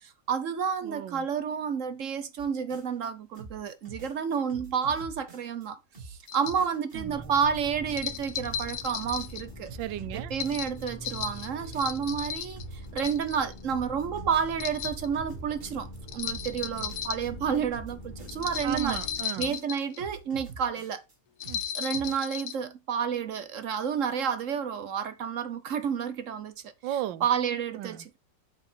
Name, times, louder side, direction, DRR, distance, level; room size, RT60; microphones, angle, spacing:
voice 1, 0.0-5.8 6.0-9.7 10.1-19.0 19.4-21.0 21.7-26.5 27.2-28.2, right 7 dB, 55° right, 1.0 m, -30 dB
voice 2, 0.8-1.3 6.6-7.3 9.7-10.3 18.6-19.5 21.5-21.6 26.8-27.3 27.7-28.1, right 13 dB, 85° right, 1.4 m, -35 dB
sound 1, 2.4-3.1 3.3-5.7 5.9-10.8 11.1-13.4 13.7-16.0 16.3-21.1 21.4-22.3, right 4 dB, 30° right, 1.9 m, -46 dB
sound 2, 6.3-6.6 7.9-9.4 10.3-12.6 13.0-13.6 14.5-15.1 16.1-17.2 18.3-20.0 21.4-22.5, left 8 dB, 65° left, 1.2 m, -35 dB
sound 3, 6.9-19.2, equal, 25° left, 2.7 m, -44 dB
8.1 x 4.4 x 5.1 m
omnidirectional pair, 2.0 m